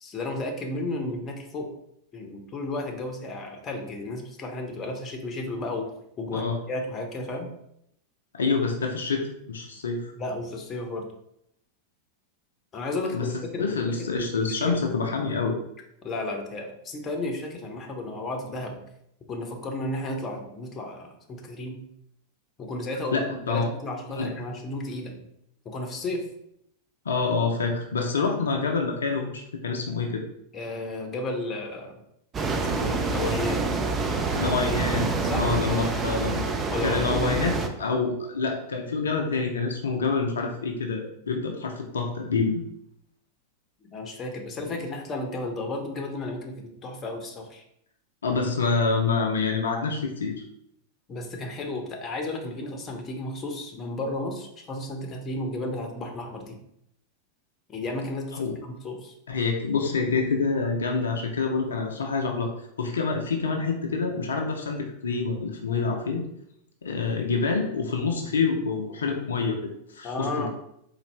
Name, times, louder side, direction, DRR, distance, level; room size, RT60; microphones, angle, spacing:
voice 1, 0.0-1.7 2.1-5.9 6.2-7.5 10.2-11.0 12.7-15.0 16.0-18.8 19.3-21.8 22.6-25.3 25.6-26.3 30.5-32.0 32.6-33.6 35.2-36.1 36.7-37.4 43.9-47.6 51.1-56.6 57.7-59.1 70.0-70.5, left 2 dB, 25° left, 3 dB, 0.7 m, -33 dB
voice 2, 8.3-10.1 13.1-13.3 13.6-15.6 23.1-23.7 24.1-24.3 27.1-30.2 34.3-35.1 35.4-36.4 36.8-42.6 48.2-50.3 58.3-58.5 59.3-62.5 62.8-66.2 66.8-70.5, left 4 dB, 70° left, 1 dB, 0.5 m, -27 dB
sound 1, 32.3-37.7, right 3 dB, 20° right, 0.4 m, -27 dB
4.0 x 2.4 x 3.2 m, 0.76 s
figure-of-eight pair, 90°, 0 cm